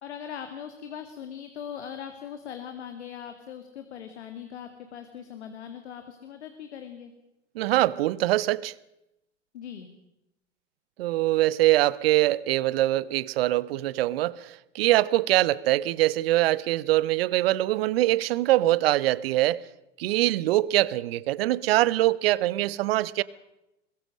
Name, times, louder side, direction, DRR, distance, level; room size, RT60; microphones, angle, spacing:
voice 1, 0.0-7.1 9.5-9.9, left 8 dB, 65° left, 2.4 m, -40 dB
voice 2, 7.5-8.7 11.0-19.6 20.0-23.2, right 16 dB, 55° right, 1.0 m, -23 dB
22.5 x 22.0 x 6.4 m
figure-of-eight pair, 90°, 37 cm